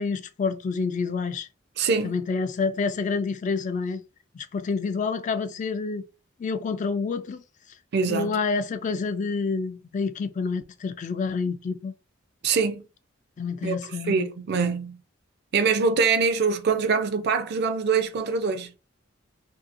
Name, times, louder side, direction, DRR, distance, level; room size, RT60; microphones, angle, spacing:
voice 1, 0.0-1.5 2.0-4.0 4.3-6.0 6.4-7.4 8.1-11.9 13.4-14.3, left 4 dB, 40° left, 0.3 m, -28 dB
voice 2, 1.8-2.2 7.9-8.4 12.4-12.8 13.6-13.8 14.0-15.0 15.5-18.7, right 5 dB, 55° right, 0.4 m, -24 dB
2.7 x 2.6 x 2.5 m
head